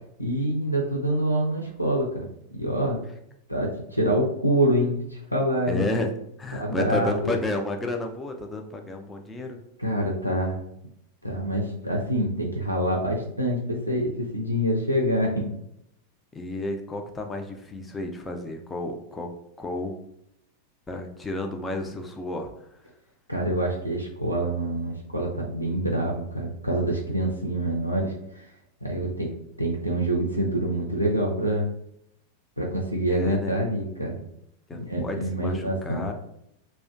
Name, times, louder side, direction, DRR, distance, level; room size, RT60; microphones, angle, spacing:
voice 1, 0.2-2.3 2.5-3.0 3.5-5.8 6.5-7.3 9.8-10.6 11.2-15.5 23.3-28.4 28.8-29.3 29.6-31.7 32.6-34.2 34.8-36.1, right 1 dB, 90° right, -2 dB, 0.4 m, -26 dB
voice 2, 5.7-6.1 6.4-9.6 16.3-20.0 20.9-22.8 33.1-33.5 34.7-36.1, left 2 dB, 15° left, 4 dB, 0.4 m, -31 dB
2.4 x 2.1 x 2.4 m, 0.77 s
figure-of-eight pair, 90°, 0 cm